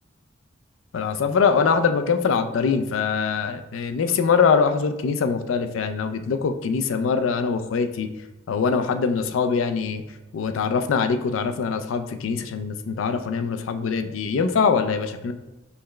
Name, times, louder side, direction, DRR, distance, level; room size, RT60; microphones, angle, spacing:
voice 1, 0.9-8.1 8.5-10.0 10.3-15.3, left 5 dB, 85° left, 8 dB, 0.4 m, -23 dB
5.6 x 2.1 x 3.2 m, 1.1 s
head